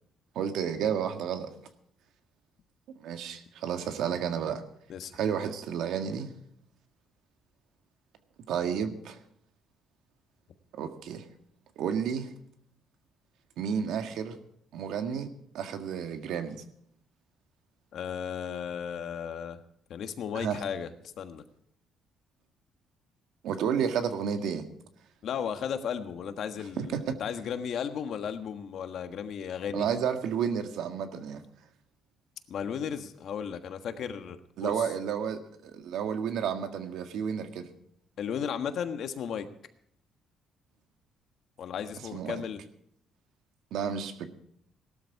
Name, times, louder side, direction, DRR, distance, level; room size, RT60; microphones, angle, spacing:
voice 1, 0.4-1.5 3.0-4.6 5.1-6.3 8.5-9.2 10.7-11.3 11.8-12.3 13.6-14.4 14.7-16.6 20.3-20.6 23.4-24.7 26.8-27.2 29.7-31.4 34.6-37.7 42.1-42.4 43.7-44.3, right 7 dB, 80° right, 7 dB, 1.7 m, -31 dB
voice 2, 17.9-19.6 19.9-20.9 21.2-21.4 25.2-29.8 32.5-34.9 38.2-39.5 41.6-42.6, left 7 dB, 60° left, 8 dB, 1.4 m, -35 dB
18.0 x 12.5 x 4.8 m, 0.70 s
cardioid pair, 140°, 0 cm